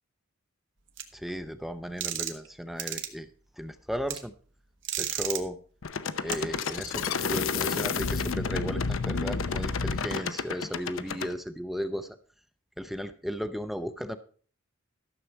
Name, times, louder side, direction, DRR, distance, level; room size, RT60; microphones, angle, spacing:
sound 1, 1.0-1.1 2.0-2.5 2.8-3.1 4.1-4.2 4.8-5.4 6.3-6.4, right 10 dB, 60° right, 1.2 m, -32 dB
voice 1, 1.1-3.3 3.6-4.3 5.0-5.6 6.2-12.1 12.8-14.2, equal, ahead, 10 dB, 0.6 m, -35 dB
sound 2, 5.8-11.3, left 5 dB, 65° left, 0.7 m, -30 dB
13.0 x 6.8 x 4.5 m, 0.42 s
head